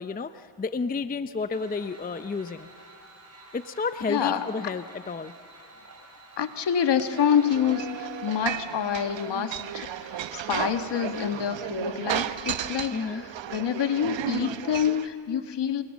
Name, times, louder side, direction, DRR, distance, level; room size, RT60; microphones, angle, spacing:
voice 1, 0.0-2.7 3.5-5.3 12.9-13.2, left 4 dB, 20° left, 12 dB, 0.5 m, -31 dB
sound 1, 1.5-11.5, right 2 dB, 30° right, 5.1 m, -50 dB
voice 2, 4.1-4.7 6.4-15.8, left 8 dB, 55° left, 8 dB, 1.4 m, -27 dB
sound 2, 7.1-15.1, right 10 dB, 60° right, 0.9 m, -34 dB
26.5 x 21.0 x 7.3 m, 2.4 s
cardioid pair, 90°, 50 cm